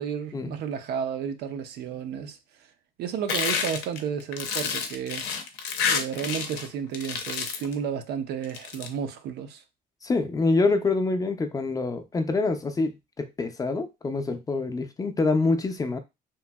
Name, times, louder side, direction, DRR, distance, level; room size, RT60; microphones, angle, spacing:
voice 1, 0.0-2.4 3.0-5.3 5.9-9.6, right 8 dB, 75° right, 0.5 m, -32 dB
sound 1, 3.3-6.7 6.9-7.7 8.4-8.9, left 6 dB, 85° left, 0.5 m, -29 dB
voice 2, 10.0-16.0, left 3 dB, 20° left, 0.4 m, -26 dB
2.9 x 2.6 x 2.2 m
cardioid pair, 110°, 17 cm